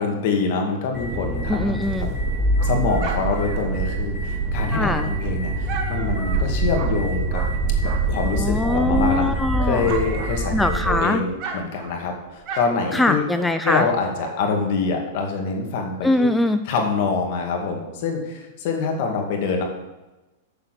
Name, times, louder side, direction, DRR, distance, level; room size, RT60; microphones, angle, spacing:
voice 1, 0.0-1.7 2.0-2.1 2.6-7.4 7.8-9.3 9.6-13.2 13.6-16.3 16.7-19.6, left 4 dB, 55° left, 2 dB, 2.2 m, -25 dB
sound 1, 0.9-11.0, right 2 dB, 15° right, 3.2 m, -25 dB
voice 2, 1.5-2.1 4.7-5.1 8.3-9.9 10.5-11.2 12.9-13.9 16.0-16.6, left 2 dB, 5° left, 8 dB, 0.4 m, -22 dB
Dog, 2.1-8.3 8.7-11.0 11.3-14.7, right 5 dB, 45° right, 1.5 m, -36 dB
6.9 x 6.8 x 6.7 m, 1.1 s
hypercardioid pair, 115°, 0 cm